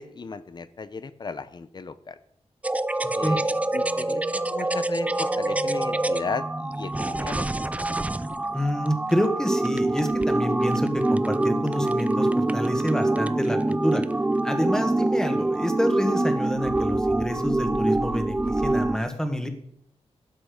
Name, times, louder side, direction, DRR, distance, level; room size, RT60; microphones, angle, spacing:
voice 1, 0.0-2.2 3.1-3.4 3.7-7.6, left 4 dB, 40° left, 14 dB, 0.7 m, -35 dB
sound 1, 2.6-19.0, right 2 dB, 10° right, 0.4 m, -25 dB
voice 2, 3.0-3.4 8.5-14.0 14.4-19.5, equal, 5° left, 6 dB, 1.5 m, -28 dB
12.5 x 8.7 x 5.2 m, 0.71 s
wide cardioid pair, 150°, 11 cm